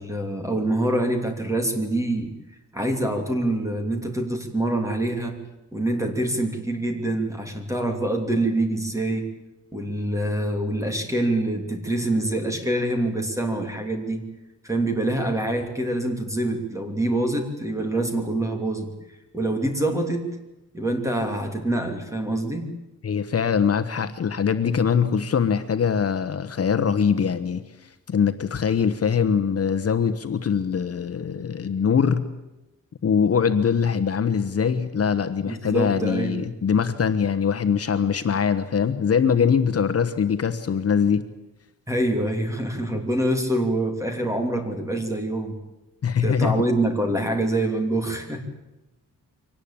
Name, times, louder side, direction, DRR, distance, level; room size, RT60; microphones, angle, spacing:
voice 1, 0.0-2.3 2.7-5.4 5.7-9.3 9.7-14.2 14.6-18.9 19.3-20.3 20.7-22.7 35.4-36.4 41.9-45.6 46.2-48.5, right 1 dB, 10° right, 4 dB, 3.0 m, -25 dB
voice 2, 23.0-27.6 28.1-32.3 33.0-41.2 46.0-46.6, left 7 dB, 45° left, 9 dB, 1.2 m, -22 dB
24.0 x 18.5 x 8.9 m, 0.98 s
wide cardioid pair, 170°, 33 cm